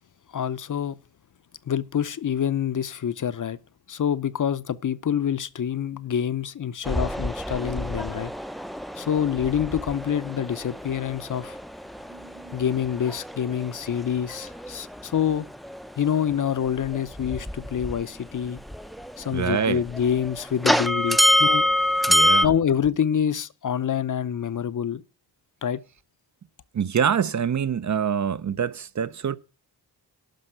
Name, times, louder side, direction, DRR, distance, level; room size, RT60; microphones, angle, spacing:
voice 1, 0.3-1.0 1.7-3.6 3.9-8.3 9.0-11.6 12.5-15.5 16.0-18.6 19.2-21.7 22.4-25.0 25.6-25.8, left 8 dB, 50° left, 0.7 m, -26 dB
sound 1, 6.8-18.2 18.4-22.5, left 1 dB, ahead, 0.5 m, -27 dB
voice 2, 12.1-12.6 19.3-19.8 22.1-22.5 26.7-29.4, right 7 dB, 45° right, 0.6 m, -25 dB
11.5 x 5.3 x 7.8 m
wide cardioid pair, 90°, 40 cm